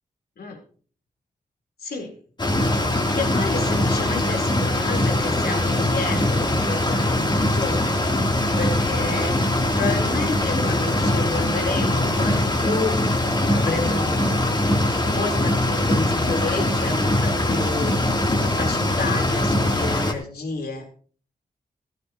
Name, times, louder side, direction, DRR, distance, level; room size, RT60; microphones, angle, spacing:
voice 1, 1.8-2.2 3.2-8.0 8.6-9.4 9.7-13.2 13.5-14.6 15.0-18.0 18.4-20.9, left 3 dB, 80° left, 2 dB, 3.9 m, -30 dB
sound 1, 2.4-20.1, left 1 dB, 30° left, 3.3 m, -22 dB
16.0 x 15.0 x 3.0 m, 0.43 s
wide cardioid pair, 95°, 16 cm